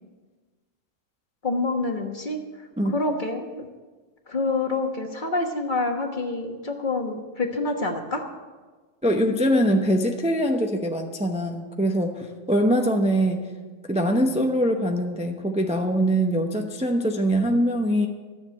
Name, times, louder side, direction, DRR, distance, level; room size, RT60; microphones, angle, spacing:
voice 1, 1.4-3.7 4.3-8.2, left 3 dB, 40° left, 4 dB, 1.4 m, -27 dB
voice 2, 9.0-13.4 13.9-18.1, equal, 5° right, 3 dB, 0.7 m, -23 dB
13.5 x 7.3 x 8.4 m, 1.4 s
omnidirectional pair, 1.4 m